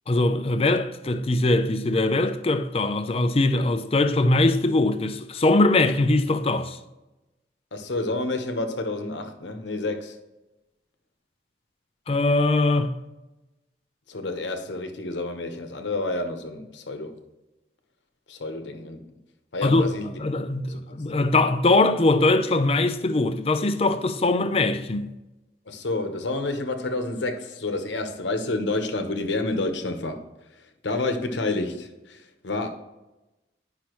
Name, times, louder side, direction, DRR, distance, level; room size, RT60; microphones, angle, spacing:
voice 1, 0.1-6.8 12.1-12.9 19.6-19.9 20.2-25.1, left 2 dB, 35° left, 0.5 m, -21 dB
voice 2, 7.7-10.2 14.1-17.2 18.3-19.1 19.5-20.1 20.7-20.9 25.7-30.2 30.8-32.7, left 2 dB, 85° left, 1.0 m, -29 dB
10.0 x 5.7 x 3.1 m
head